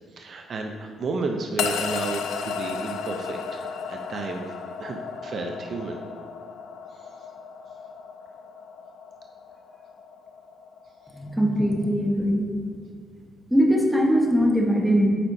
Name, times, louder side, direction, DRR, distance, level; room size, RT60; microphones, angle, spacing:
voice 1, 0.2-3.4 3.9-4.4 4.8-6.0, right 3 dB, 55° right, 3 dB, 0.5 m, -32 dB
sound 1, 1.6-11.9, left 6 dB, 80° left, 0.4 m, -34 dB
voice 2, 11.1-12.4 13.5-15.1, equal, 5° right, -1 dB, 1.1 m, -21 dB
8.5 x 5.3 x 2.7 m, 2.1 s
cardioid pair, 90°, 0 cm